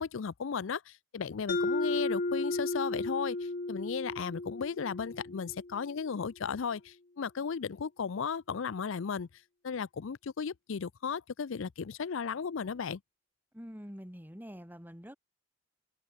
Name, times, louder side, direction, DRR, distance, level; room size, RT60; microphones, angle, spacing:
voice 1, 0.0-9.3 9.6-13.0, left 6 dB, 60° left, 0.5 m, -35 dB
Mallet percussion, 1.5-6.0, left 2 dB, 40° left, 0.9 m, -34 dB
voice 2, 13.5-15.2, equal, 10° right, 4.4 m, -46 dB
head